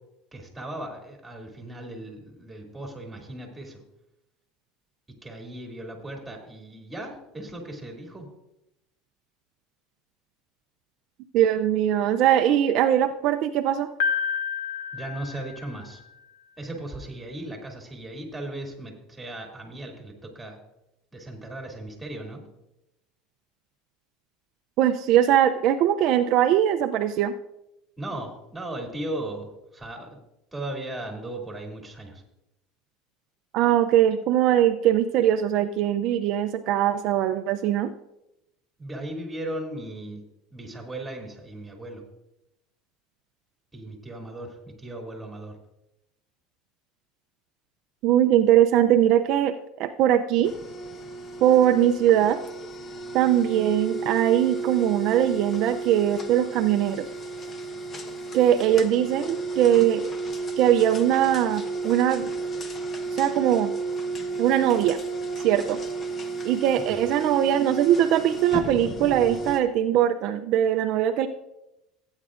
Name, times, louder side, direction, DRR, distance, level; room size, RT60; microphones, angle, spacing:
voice 1, 0.3-3.8 5.2-8.3 14.9-16.0 16.6-20.6 21.1-22.4 28.0-29.5 29.7-30.2 30.5-32.2 38.8-40.2 40.5-42.0 43.7-45.6 66.9-67.0, right 1 dB, 5° right, 1 dB, 2.6 m, -37 dB
voice 2, 11.3-13.9 24.8-27.3 33.5-37.9 48.0-49.5 49.8-50.5 51.4-52.4 53.1-57.1 58.3-60.0 60.6-62.3 63.1-63.7 64.4-65.0 65.4-65.8 66.4-71.3, right 11 dB, 55° right, 7 dB, 0.5 m, -21 dB
Piano, 14.0-16.1, left 7 dB, 75° left, 1.2 m, -29 dB
sound 1, 50.4-69.6, right 3 dB, 30° left, 0.9 m, -32 dB
15.5 x 8.9 x 2.5 m, 0.87 s
supercardioid pair, 125°, 0 cm